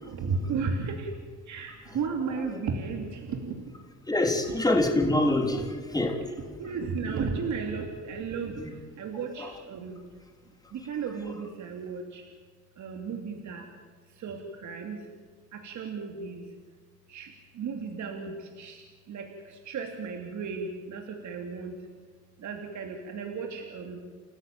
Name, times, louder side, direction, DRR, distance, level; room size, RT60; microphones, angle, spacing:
voice 1, 0.0-1.1 1.5-3.5 5.6-5.7 6.6-8.5 9.0-10.0 10.7-12.2 12.8-13.6 14.2-15.0 15.6-16.4 17.1-17.3 17.6-18.8 19.1-19.3 19.7-21.7 22.4-24.0, right 5 dB, 70° right, 3 dB, 2.9 m, -34 dB
voice 2, 4.1-6.2, left 2 dB, 10° left, 3 dB, 3.5 m, -25 dB
29.5 x 14.0 x 9.2 m, 1.5 s
cardioid pair, 90°, 30 cm